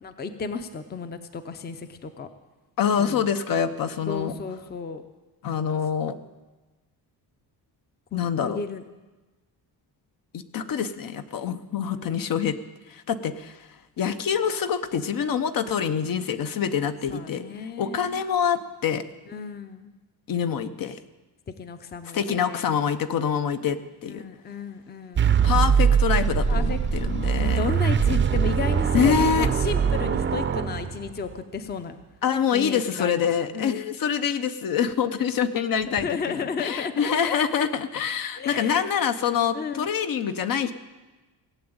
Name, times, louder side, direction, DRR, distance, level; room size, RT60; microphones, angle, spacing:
voice 1, 0.0-2.3 3.0-3.3 4.1-5.0 8.1-8.8 12.0-12.2 17.1-18.2 19.3-19.9 21.6-22.7 24.1-25.3 26.5-26.8 27.4-32.0 32.5-33.8 35.9-36.9 37.3-37.4 38.4-38.9 39.5-39.9, left 5 dB, 25° left, 10 dB, 0.6 m, -33 dB
voice 2, 2.8-4.3 5.4-6.1 8.1-8.6 10.3-12.6 12.9-13.7 14.0-17.4 17.8-19.0 20.3-21.0 22.1-24.2 25.4-27.6 28.9-29.5 32.2-40.7, left 7 dB, 55° left, 10 dB, 0.8 m, -25 dB
sound 1, 25.2-31.3, right 7 dB, 30° right, 0.6 m, -22 dB
18.0 x 7.8 x 8.8 m, 1.2 s
cardioid pair, 170°, 41 cm